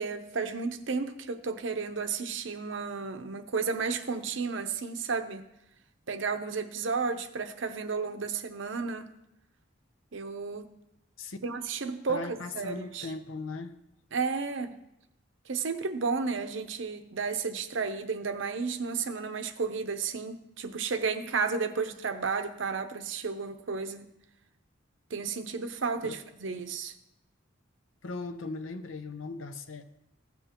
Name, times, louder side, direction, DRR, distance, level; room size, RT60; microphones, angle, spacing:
voice 1, 0.0-5.4 6.1-9.1 10.1-10.7 11.4-13.1 14.1-14.8 15.5-24.1 25.1-26.9, right 5 dB, 70° right, 0.7 m, -32 dB
voice 2, 12.1-13.8 26.0-26.2 28.0-29.8, left 3 dB, 85° left, 0.7 m, -38 dB
15.5 x 7.1 x 2.9 m
head